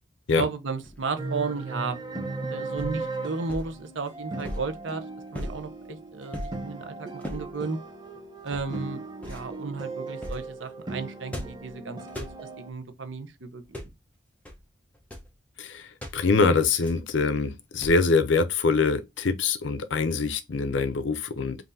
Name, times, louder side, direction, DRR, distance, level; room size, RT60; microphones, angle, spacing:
voice 1, 0.4-5.0 5.3-7.8 8.4-12.0 12.6-13.6, right 4 dB, 70° right, 0.7 m, -34 dB
sound 1, 0.8-1.2 2.8-3.0 3.5-3.7 4.4-4.8 5.3-5.7 6.3-6.6 7.2-7.5 8.5-8.8 9.2-9.5 10.2-10.5 11.3-11.7 12.1-12.4 13.6-14.0 14.5-14.6 14.9-15.3 16.0-16.2 16.8-17.1 17.8-18.1, equal, 5° left, 0.9 m, -38 dB
sound 2, 1.2-12.7, right 3 dB, 20° right, 0.8 m, -37 dB
voice 2, 15.6-21.6, left 4 dB, 65° left, 0.5 m, -24 dB
5.4 x 2.6 x 2.7 m
head